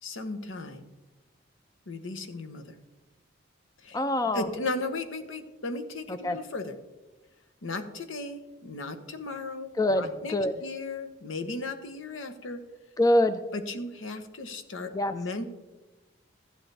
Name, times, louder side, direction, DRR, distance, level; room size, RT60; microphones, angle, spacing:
voice 1, 0.0-0.8 1.9-2.7 3.8-4.0 4.3-6.7 7.6-10.3 10.6-12.6 13.5-15.5, left 2 dB, 80° left, 7 dB, 1.0 m, -36 dB
voice 2, 3.9-4.5 6.1-6.4 9.8-10.5 13.0-13.4 14.9-15.1, left 1 dB, 20° left, 10 dB, 0.4 m, -25 dB
14.0 x 9.4 x 3.3 m, 1.1 s
head